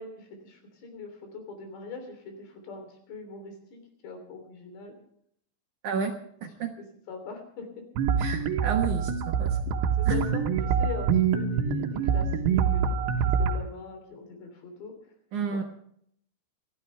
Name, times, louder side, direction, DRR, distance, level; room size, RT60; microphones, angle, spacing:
voice 1, 0.0-5.0 7.1-7.8 10.0-15.0 15.5-15.6, left 4 dB, 85° left, 5 dB, 5.6 m, -42 dB
voice 2, 6.4-6.7 8.2-9.6 10.1-10.2 15.3-15.6, right 6 dB, 60° right, 3 dB, 2.2 m, -31 dB
sound 1, 8.0-13.6, right 6 dB, 80° right, 3.4 m, -25 dB
28.0 x 12.5 x 3.4 m, 0.68 s
omnidirectional pair, 4.8 m